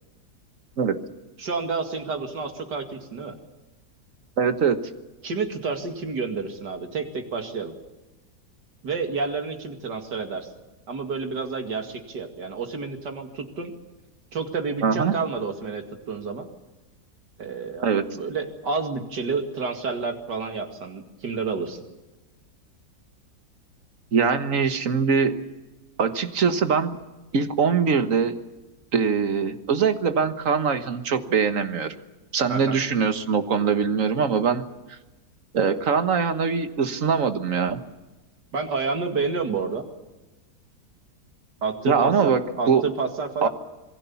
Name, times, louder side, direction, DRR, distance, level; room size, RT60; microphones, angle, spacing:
voice 1, 1.4-3.4 5.2-7.7 8.8-10.5 10.9-13.7 14.3-16.5 17.4-21.8 32.5-32.8 38.5-39.8 41.6-43.5, right 4 dB, 85° right, 5 dB, 2.9 m, -29 dB
voice 2, 4.4-4.8 14.8-15.1 17.8-18.0 24.1-25.3 26.0-27.0 27.3-28.3 28.9-31.9 32.3-34.6 34.9-35.0 35.5-37.8 41.9-42.8 43.4-43.5, right 6 dB, 50° right, 9 dB, 1.7 m, -22 dB
27.0 x 20.0 x 7.1 m, 1.1 s
omnidirectional pair, 1.8 m